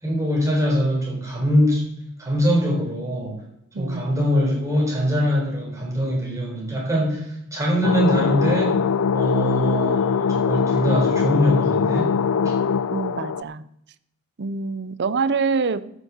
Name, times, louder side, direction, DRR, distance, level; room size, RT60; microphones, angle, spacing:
voice 1, 0.0-1.9 2.2-3.4 3.8-7.3 7.5-8.8 9.1-12.1 12.4-12.5, equal, 15° right, -2 dB, 4.4 m, -22 dB
voice 2, 3.7-4.2 12.9-13.6 14.4-15.9, right 4 dB, 55° right, 15 dB, 0.6 m, -25 dB
sound 1, 7.8-13.4, left 6 dB, 85° left, 0.4 m, -22 dB
13.0 x 6.9 x 7.2 m, 0.78 s
head